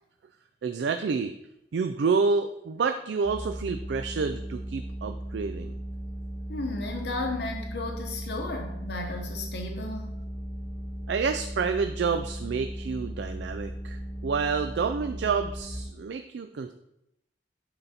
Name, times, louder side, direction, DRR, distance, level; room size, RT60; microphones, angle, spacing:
voice 1, 0.6-1.3 1.7-5.7 11.1-16.7, right 5 dB, 70° right, 8 dB, 0.3 m, -28 dB
sound 1, 3.2-15.8, equal, 5° right, 1.3 m, -37 dB
voice 2, 6.5-10.1, left 2 dB, 65° left, 2 dB, 0.9 m, -34 dB
8.9 x 4.0 x 4.2 m, 0.84 s
head